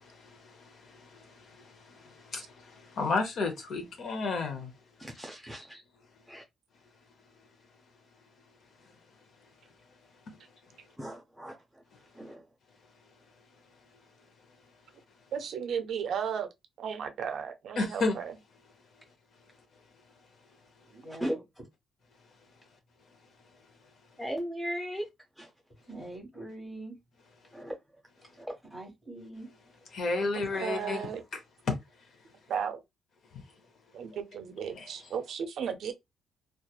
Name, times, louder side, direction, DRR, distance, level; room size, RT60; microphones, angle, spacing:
voice 1, 0.3-0.8 1.1-4.7 17.8-18.2 24.9-25.0 29.9-31.4 31.7-31.8 34.7-35.0, left 3 dB, 55° left, 0.6 m, -32 dB
voice 2, 5.0-5.8 6.3-6.4 11.0-11.8 12.1-12.5 21.1-21.4 24.2-25.0 25.4-25.5 27.5-27.8 28.4-28.6, equal, 5° right, 0.4 m, -37 dB
voice 3, 15.3-16.5 16.8-18.4 30.3-31.2 32.5-32.8 33.9-35.9, right 7 dB, 65° right, 0.4 m, -35 dB
voice 4, 20.9-21.4 25.9-27.0 28.7-29.5 30.5-31.2, right 2 dB, 15° left, 1.6 m, -44 dB
2.8 x 2.3 x 2.2 m
cardioid pair, 140°, 0 cm